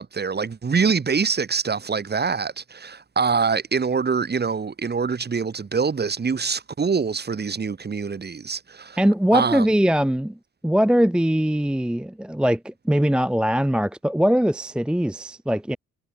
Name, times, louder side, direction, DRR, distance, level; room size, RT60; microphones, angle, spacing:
voice 1, 0.0-9.0 9.3-9.7, right 5 dB, 35° right, 2.8 m, -24 dB
voice 2, 9.0-10.4 10.6-15.8, equal, 5° right, 0.8 m, -21 dB
cardioid pair, 90°, 30 cm